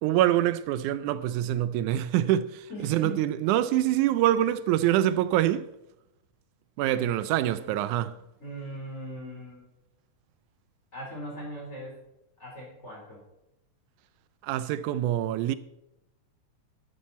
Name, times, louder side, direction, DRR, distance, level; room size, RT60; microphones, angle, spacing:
voice 1, 0.0-5.7 6.8-8.2 14.4-15.6, right 12 dB, 85° right, 2.0 m, -25 dB
voice 2, 2.7-3.3 6.9-7.8 8.4-9.6 10.9-12.0 12.4-13.2, right 1 dB, 20° left, 4.1 m, -40 dB
12.0 x 11.5 x 4.2 m
omnidirectional pair, 3.5 m